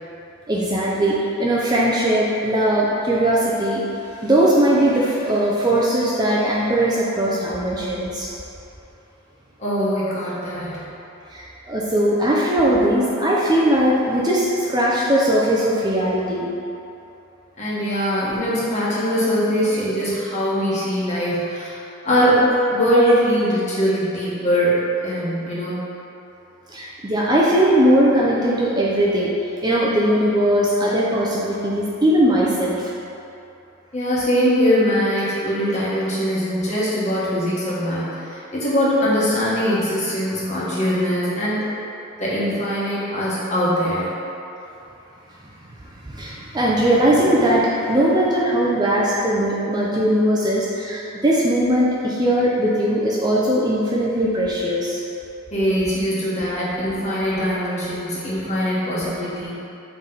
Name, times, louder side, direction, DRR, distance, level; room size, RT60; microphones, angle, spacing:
voice 1, 0.5-3.8 4.2-8.3 10.6-10.9 11.3-16.5 26.7-29.3 29.6-32.9 46.0-55.0, right 1 dB, 20° right, -6 dB, 0.5 m, -19 dB
voice 2, 9.6-10.8 17.6-21.8 22.0-25.8 33.9-41.6 42.2-44.1 55.5-59.5, equal, 35° left, -9 dB, 1.4 m, -21 dB
7.8 x 3.4 x 3.9 m, 2.8 s
head